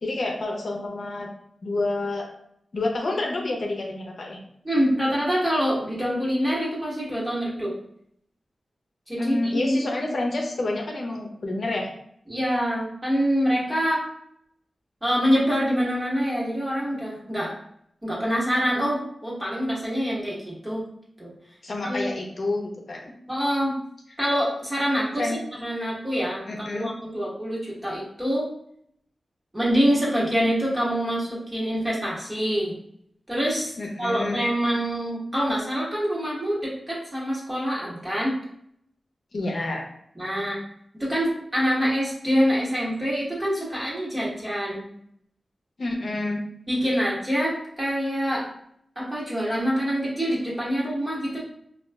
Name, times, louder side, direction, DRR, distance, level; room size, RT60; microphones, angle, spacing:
voice 1, 0.0-1.3 1.6-2.3 2.7-4.4 9.2-11.9 21.6-23.1 25.2-25.4 26.5-26.9 33.8-34.4 39.3-39.8 45.8-46.4, left 2 dB, 65° left, 0 dB, 0.6 m, -28 dB
voice 2, 4.6-7.7 9.1-9.8 12.3-14.0 15.0-17.5 18.0-20.8 21.2-21.3 21.8-22.1 23.3-23.8 24.2-28.5 29.5-32.7 33.3-33.7 34.0-38.4 40.2-40.6 40.9-44.8 46.7-48.5 49.0-51.4, equal, 20° right, -6 dB, 1.3 m, -25 dB
5.0 x 2.3 x 2.2 m, 0.69 s
wide cardioid pair, 110°, 0 cm